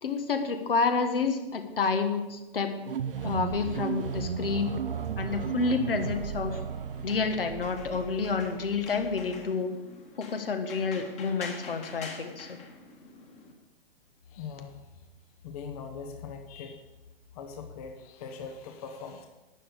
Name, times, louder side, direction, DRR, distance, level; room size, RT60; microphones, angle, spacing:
voice 1, 0.0-2.7 3.2-4.7 5.2-6.6 7.0-9.7 10.2-12.5, left 4 dB, 65° left, 6 dB, 1.5 m, -29 dB
sound 1, 2.8-9.5, right 7 dB, 65° right, 0.8 m, -35 dB
sound 2, 3.5-13.5, left 4 dB, 20° left, 1.7 m, -48 dB
voice 2, 14.3-14.9 15.4-16.9 17.3-19.3, left 6 dB, 40° left, 4 dB, 1.1 m, -41 dB
11.5 x 8.7 x 5.1 m, 1.1 s
figure-of-eight pair, 115°, 30 cm